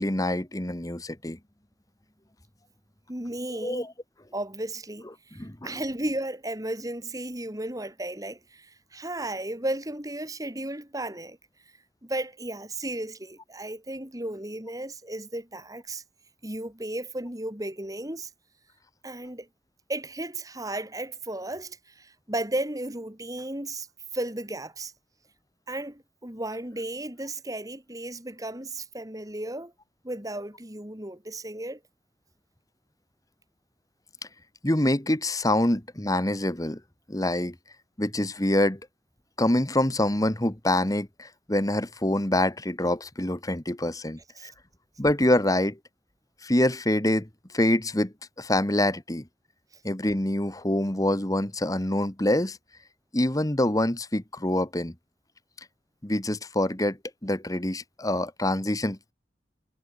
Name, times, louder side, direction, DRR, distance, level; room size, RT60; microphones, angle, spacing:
voice 1, 0.0-1.4 3.6-3.9 5.3-5.8 34.6-36.8 37.1-37.5 38.0-38.8 39.4-44.5 45.0-45.8 46.4-47.3 47.5-49.2 49.8-52.6 53.1-54.9 56.0-57.0 57.2-59.0, left 1 dB, 20° left, 1.6 m, -25 dB
voice 2, 3.1-3.9 4.3-11.4 12.0-16.0 16.4-18.3 19.0-19.5 19.9-23.9 24.1-24.9 25.7-29.7 30.0-31.8 44.4-44.5, right 1 dB, 20° right, 3.7 m, -34 dB
head